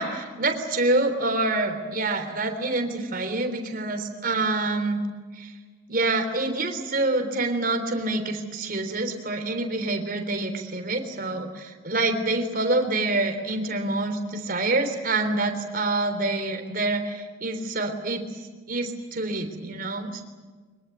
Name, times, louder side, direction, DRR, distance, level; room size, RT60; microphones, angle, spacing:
voice 1, 0.0-5.0 5.4-5.5 5.9-18.3 18.7-20.2, right 2 dB, 50° right, 7 dB, 3.5 m, -26 dB
24.0 x 22.5 x 9.4 m, 1.4 s
head